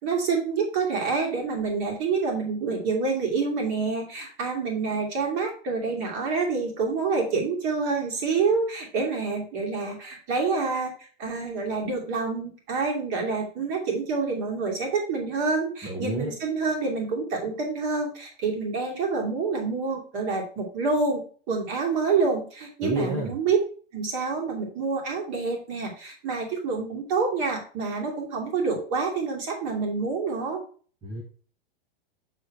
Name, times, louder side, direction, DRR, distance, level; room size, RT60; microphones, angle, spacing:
voice 1, 0.0-10.9 11.2-21.2 21.5-23.6 23.9-30.6, right 4 dB, 35° right, 0 dB, 2.6 m, -27 dB
voice 2, 15.8-16.3 22.8-23.3 31.0-31.2, right 1 dB, 15° right, 0 dB, 0.8 m, -29 dB
6.5 x 4.1 x 4.5 m, 0.42 s
hypercardioid pair, 150°, 30 cm